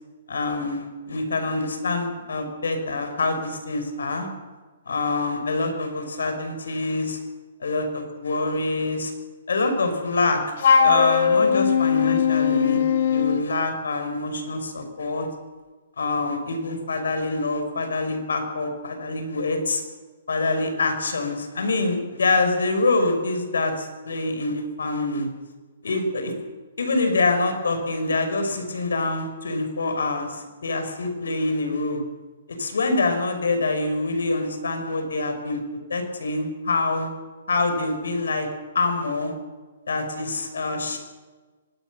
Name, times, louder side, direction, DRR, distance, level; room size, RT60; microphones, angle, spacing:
voice 1, 0.3-4.3 4.9-7.2 7.6-9.1 9.5-10.4 10.8-15.3 16.0-19.8 20.3-25.3 25.8-26.3 26.8-32.0 32.6-35.6 35.9-37.1 37.5-38.5 38.7-39.3 39.9-41.0, left 3 dB, 90° left, 6 dB, 5.6 m, -25 dB
Wind instrument woodwind instrument, 10.6-13.5, left 6 dB, 65° left, 2.2 m, -19 dB
24.5 x 20.0 x 6.4 m, 1.3 s
hypercardioid pair, 145°, 0 cm